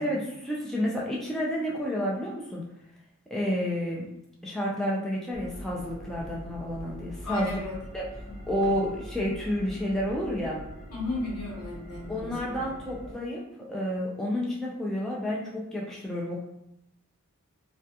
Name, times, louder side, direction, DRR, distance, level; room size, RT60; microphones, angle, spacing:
voice 1, 0.0-2.6 3.3-4.0 4.4-7.5 7.9-8.1 8.5-10.6 12.1-13.4 13.7-16.4, equal, ahead, -5 dB, 0.3 m, -30 dB
sound 1, 5.3-13.1, equal, 25° left, 1.0 m, -43 dB
voice 2, 7.2-7.8 8.3-8.4 8.6-8.7 10.9-12.6, left 2 dB, 90° left, -4 dB, 1.0 m, -35 dB
2.3 x 2.2 x 2.7 m, 0.83 s
head